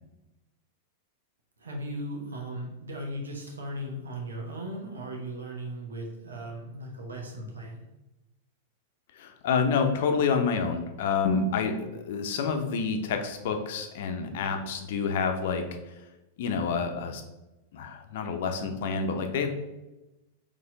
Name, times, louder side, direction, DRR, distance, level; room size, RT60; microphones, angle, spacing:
voice 1, 1.6-7.8, right 1 dB, 80° right, 0 dB, 1.1 m, -37 dB
voice 2, 9.2-15.7 16.4-17.2 17.7-19.5, left 5 dB, 60° left, 5 dB, 0.7 m, -28 dB
4.2 x 3.2 x 3.8 m, 1.0 s
hypercardioid pair, 100°, 0 cm